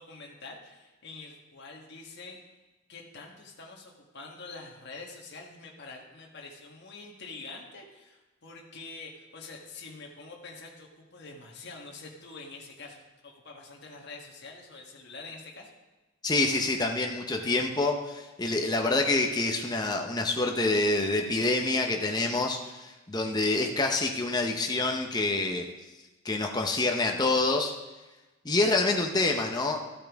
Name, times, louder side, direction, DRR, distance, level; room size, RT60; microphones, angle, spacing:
voice 1, 0.0-2.4 2.9-15.7, left 3 dB, 50° left, -1 dB, 1.3 m, -46 dB
voice 2, 16.2-25.7 26.2-27.7 28.4-29.8, left 2 dB, 20° left, 2 dB, 0.7 m, -27 dB
13.0 x 8.7 x 3.5 m, 1.1 s
head